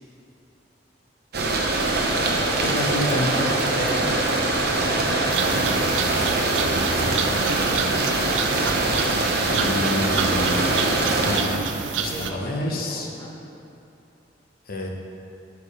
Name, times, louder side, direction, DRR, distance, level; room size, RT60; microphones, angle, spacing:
sound 1, 1.3-11.4, right 2 dB, 60° right, 0.8 m, -23 dB
voice 1, 2.6-3.5 3.8-4.1 9.5-10.8 11.1-11.6 12.0-13.1 14.7-14.9, left 1 dB, 55° left, 0 dB, 0.8 m, -28 dB
voice 2, 3.1-3.7 12.1-13.3, equal, 20° left, -5 dB, 1.1 m, -40 dB
sound 2, 5.3-12.3, right 7 dB, 85° right, 0.4 m, -29 dB
6.7 x 4.7 x 4.9 m, 2.7 s
head